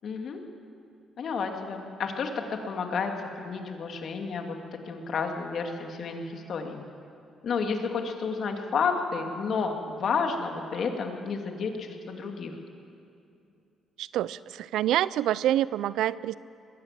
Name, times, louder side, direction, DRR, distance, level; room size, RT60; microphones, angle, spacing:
voice 1, 0.0-0.4 1.2-4.6 4.9-6.8 7.4-12.6, left 5 dB, 60° left, 4 dB, 2.5 m, -31 dB
voice 2, 14.0-16.4, right 12 dB, 85° right, 19 dB, 0.4 m, -27 dB
22.0 x 16.5 x 7.6 m, 2.6 s
cardioid pair, 90°, 0 cm